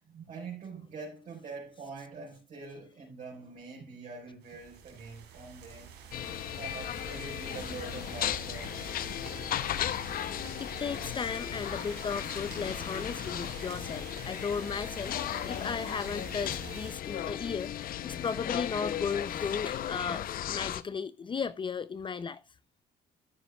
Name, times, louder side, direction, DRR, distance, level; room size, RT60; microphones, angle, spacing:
voice 1, 0.1-5.9 6.6-9.0 18.2-18.3, right 4 dB, 45° right, 4.9 m, -44 dB
sound 1, 4.4-16.9, right 7 dB, 80° right, 3.7 m, -47 dB
sound 2, 6.1-20.8, left 11 dB, 60° left, 0.8 m, -36 dB
voice 2, 9.9-10.3 10.6-22.4, left 6 dB, 30° left, 0.6 m, -36 dB
sound 3, 12.5-13.3 14.4-19.4, left 7 dB, 80° left, 5.1 m, -47 dB
13.0 x 9.6 x 2.3 m
cardioid pair, 110°, 17 cm